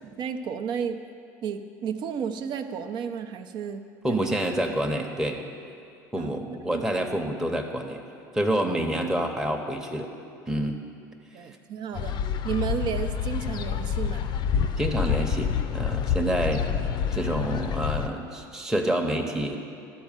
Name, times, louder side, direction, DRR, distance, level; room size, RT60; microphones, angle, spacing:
voice 1, 0.2-1.0 1.4-3.8 4.1-4.4 6.2-6.9 7.5-7.6 11.3-12.2 12.4-14.3, right 7 dB, 50° right, 8 dB, 0.7 m, -32 dB
voice 2, 4.0-5.4 6.1-8.0 8.3-10.1 10.5-10.8 11.4-11.6 14.8-16.7 17.1-19.6, right 1 dB, 5° right, 1 dB, 0.9 m, -28 dB
sound 1, 11.9-18.1, left 7 dB, 50° left, 0.6 m, -27 dB
12.0 x 4.4 x 7.3 m, 2.5 s
hypercardioid pair, 80°, 10 cm